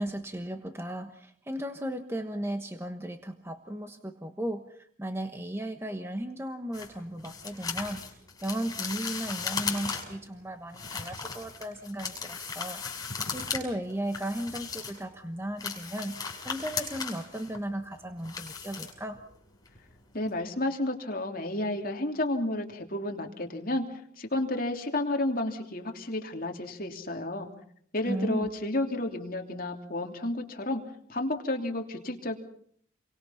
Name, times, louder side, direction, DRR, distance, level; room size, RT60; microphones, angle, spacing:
voice 1, 0.0-4.6 5.0-8.0 8.4-12.8 13.3-16.2 16.4-19.2 28.0-28.5, right 1 dB, 10° right, 7 dB, 1.2 m, -35 dB
sound 1, 6.7-10.3 10.7-13.6 13.9-15.1 15.4-19.4 19.7-19.9 20.3-20.4, left 5 dB, 20° left, 6.4 m, -36 dB
voice 2, 20.1-27.5 27.9-30.8 31.1-32.4, left 1 dB, 45° left, 3 dB, 3.0 m, -31 dB
29.5 x 23.5 x 5.8 m, 0.64 s
head